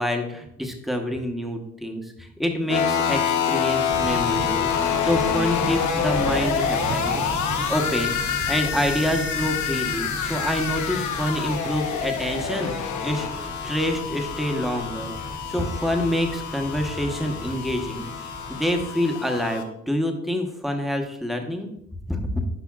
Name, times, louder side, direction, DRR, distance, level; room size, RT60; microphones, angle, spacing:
voice 1, 0.0-4.7 5.0-7.1 7.7-8.1 8.5-13.3 13.6-15.2 15.5-18.1 18.5-21.7 22.1-22.5, equal, ahead, 3 dB, 1.1 m, -27 dB
sound 1, 2.7-19.6, left 7 dB, 70° left, 0.9 m, -27 dB
sound 2, 3.9-18.8, right 3 dB, 25° right, 0.6 m, -36 dB
10.5 x 5.1 x 2.4 m, 0.78 s
cardioid pair, 90°, 30 cm